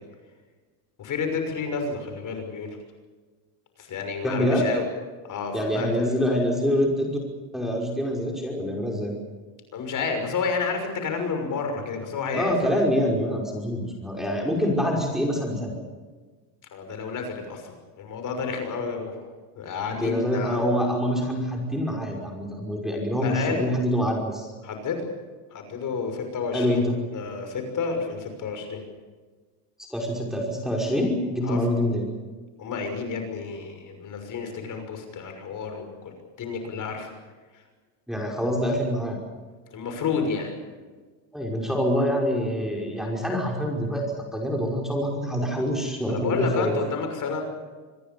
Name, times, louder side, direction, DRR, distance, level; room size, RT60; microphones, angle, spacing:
voice 1, 1.0-2.8 3.8-4.8 5.2-6.1 9.7-12.5 16.7-19.2 19.5-20.6 23.2-23.7 24.6-25.1 25.5-26.8 27.1-28.8 31.4-31.6 32.6-36.1 36.4-37.1 37.5-37.6 39.7-40.5 46.1-47.4, left 5 dB, 40° left, 5 dB, 6.2 m, -30 dB
voice 2, 4.2-4.7 5.5-7.2 7.5-9.1 12.3-15.8 20.0-24.5 26.5-26.9 29.9-32.0 38.1-39.2 41.3-44.0 44.3-46.8, equal, ahead, -1 dB, 5.4 m, -25 dB
26.5 x 21.0 x 7.1 m, 1.4 s
cardioid pair, 135°, 49 cm